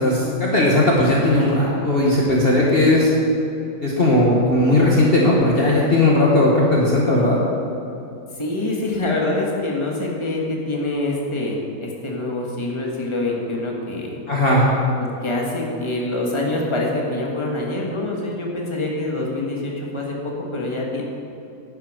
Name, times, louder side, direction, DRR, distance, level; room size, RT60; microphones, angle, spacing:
voice 1, 0.0-3.1 3.8-7.4 14.3-14.7, left 1 dB, 40° left, -4 dB, 1.5 m, -17 dB
voice 2, 8.3-14.2 15.0-21.0, left 2 dB, 20° left, -2 dB, 1.7 m, -25 dB
11.0 x 10.5 x 5.0 m, 2.8 s
omnidirectional pair, 1.6 m